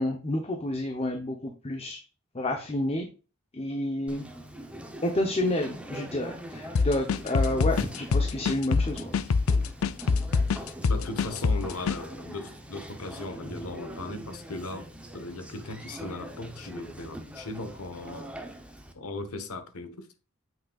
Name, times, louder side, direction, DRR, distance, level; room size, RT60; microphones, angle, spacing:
voice 1, 0.0-2.0 2.3-3.1 3.5-4.2 5.0-9.1, left 1 dB, 25° left, 0.8 m, -29 dB
Conversation, 4.1-18.9, right 1 dB, 5° right, 0.7 m, -43 dB
sound 1, 6.8-12.0, left 4 dB, 65° left, 0.5 m, -25 dB
voice 2, 10.9-14.9 15.1-18.3 18.9-20.1, left 2 dB, 80° left, 1.2 m, -38 dB
7.7 x 6.2 x 2.4 m
head